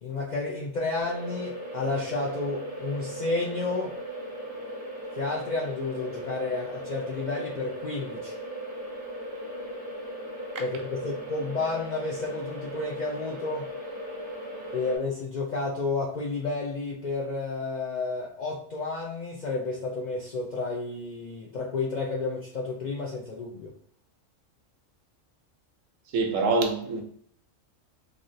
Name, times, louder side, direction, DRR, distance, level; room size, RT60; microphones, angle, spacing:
voice 1, 0.0-3.9 5.2-8.4 10.6-13.7 14.7-23.7, left 3 dB, 65° left, 0.4 m, -31 dB
sound 1, 1.0-15.0, equal, 20° right, 1.1 m, -38 dB
voice 2, 26.1-27.0, right 3 dB, 85° right, 1.0 m, -25 dB
3.4 x 2.4 x 2.6 m
omnidirectional pair, 1.3 m